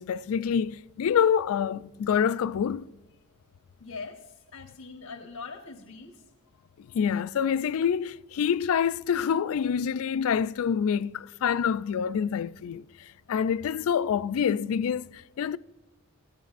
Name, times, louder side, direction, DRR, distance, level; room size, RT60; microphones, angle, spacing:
voice 1, 0.0-2.9 6.9-15.6, left 7 dB, 70° left, 0.3 m, -27 dB
voice 2, 3.8-6.2, left 4 dB, 90° left, 1.0 m, -42 dB
16.5 x 14.0 x 2.5 m
head